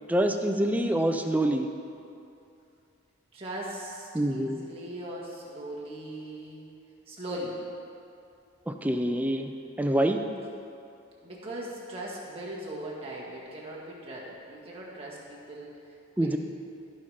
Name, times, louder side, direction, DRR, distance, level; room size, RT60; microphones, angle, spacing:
voice 1, 0.1-1.7 4.1-4.6 8.7-9.5 9.8-10.2 16.2-16.4, right 1 dB, 10° right, 5 dB, 0.4 m, -26 dB
voice 2, 3.3-6.6 7.1-7.6 11.2-15.7 16.2-16.4, right 1 dB, 30° right, -5 dB, 1.8 m, -39 dB
15.0 x 5.7 x 4.9 m, 2.6 s
head